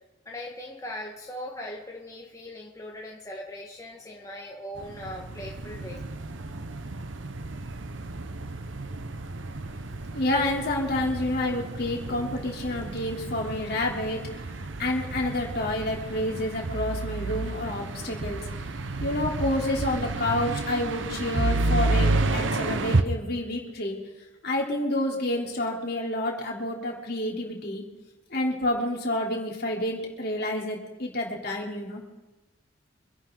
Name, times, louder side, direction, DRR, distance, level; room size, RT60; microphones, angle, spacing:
voice 1, 0.2-6.0, left 1 dB, 15° left, -1 dB, 1.5 m, -39 dB
sound 1, 4.8-23.0, right 2 dB, 90° right, 1.0 m, -31 dB
voice 2, 10.1-14.2 14.8-18.4 19.0-24.0 24.4-27.8 28.3-32.0, left 1 dB, 55° left, -1 dB, 3.6 m, -29 dB
26.0 x 11.5 x 3.9 m, 1.1 s
head